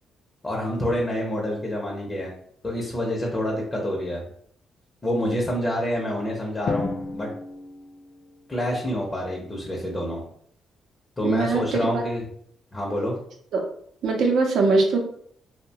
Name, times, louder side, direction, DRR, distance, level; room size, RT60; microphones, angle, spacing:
voice 1, 0.4-2.3 2.6-4.2 5.0-7.3 8.5-10.2 11.2-12.2 12.7-13.2, equal, 25° left, -2 dB, 0.7 m, -27 dB
Drum, 6.7-8.8, left 3 dB, 50° left, 0.3 m, -32 dB
voice 2, 11.2-12.0 13.5-13.6 14.0-15.0, right 3 dB, 70° right, 2 dB, 0.6 m, -22 dB
2.7 x 2.1 x 2.7 m, 0.65 s
cardioid pair, 90°, 0 cm